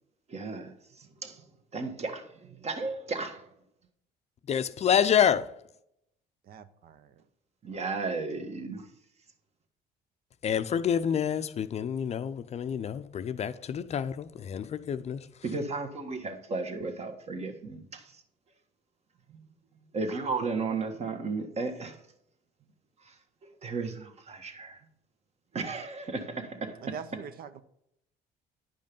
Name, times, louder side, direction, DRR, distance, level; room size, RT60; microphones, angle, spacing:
voice 1, 0.3-1.4 1.7-3.5 7.6-8.9 15.4-18.2 19.3-19.4 19.9-22.0 23.0-23.1 23.6-24.8 25.5-27.0, right 3 dB, 40° right, 1.5 m, -34 dB
voice 2, 4.5-5.5 10.4-15.3, left 8 dB, 40° left, 0.5 m, -28 dB
voice 3, 6.5-7.1 26.8-27.6, right 7 dB, 60° right, 0.9 m, -43 dB
10.5 x 5.3 x 5.3 m
cardioid pair, 110°, 17 cm